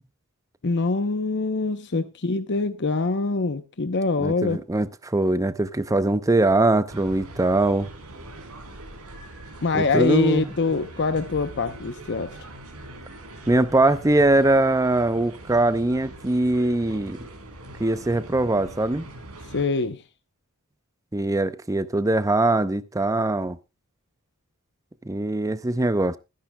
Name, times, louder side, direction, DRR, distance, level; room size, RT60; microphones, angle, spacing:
voice 1, 0.6-4.6 9.6-12.3 19.5-20.0, left 3 dB, 55° left, 0.7 m, -24 dB
voice 2, 4.2-7.9 9.7-10.4 13.5-17.2 17.8-19.1 21.1-23.6 25.1-26.2, right 2 dB, 15° right, 0.6 m, -22 dB
sound 1, 6.9-19.6, right 1 dB, 85° right, 3.6 m, -42 dB
20.5 x 10.5 x 2.2 m
head